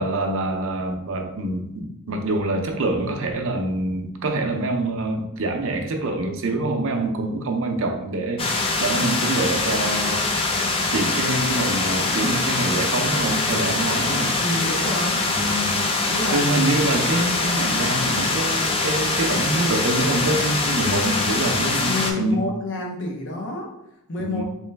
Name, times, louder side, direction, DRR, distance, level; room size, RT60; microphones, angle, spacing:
voice 1, 0.0-10.3 10.9-14.4 15.3-15.9 16.3-22.4 24.2-24.4, right 2 dB, 65° right, 4 dB, 0.5 m, -25 dB
sound 1, 8.4-22.1, left 3 dB, 25° left, 0.4 m, -23 dB
voice 2, 14.4-15.2 16.0-16.8 21.8-23.7 24.1-24.4, left 2 dB, 55° left, 1 dB, 0.7 m, -28 dB
3.2 x 3.0 x 3.3 m, 0.84 s
head